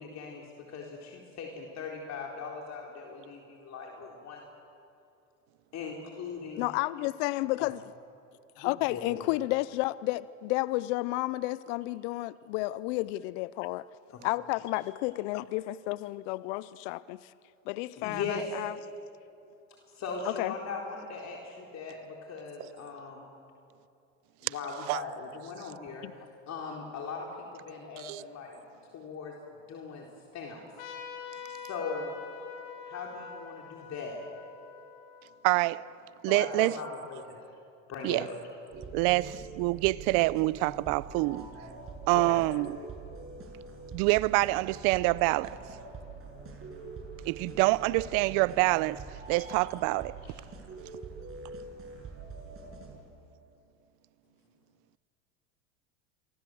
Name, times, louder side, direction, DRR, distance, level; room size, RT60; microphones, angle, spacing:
voice 1, 0.0-4.4 5.7-6.7 7.6-7.7 8.9-9.3 14.1-14.2 18.0-18.4 20.0-23.3 24.4-26.1 26.5-27.3 27.5-28.6 28.9-29.3 29.7-30.0 30.3-30.6 31.7-32.2 32.9-34.2 36.3-37.4 37.9-38.4 42.1-42.4 49.3-49.4, left 4 dB, 40° left, 4.0 m, -39 dB
voice 2, 6.6-7.8 8.6-13.9 14.2-17.3 17.7-18.8 20.2-20.5 26.0-26.1, left 19 dB, 65° left, 0.7 m, -31 dB
Trumpet, 30.8-35.9, left 7 dB, 80° left, 3.7 m, -45 dB
voice 3, 35.4-35.9 36.2-36.8 38.0-38.3 38.9-41.5 42.1-42.8 43.9-45.6 47.2-49.0 49.3-50.2, right 21 dB, 55° right, 0.8 m, -26 dB
sound 1, 38.7-53.0, right 4 dB, 35° right, 6.8 m, -45 dB
28.5 x 23.5 x 7.8 m
hypercardioid pair, 95°, 40 cm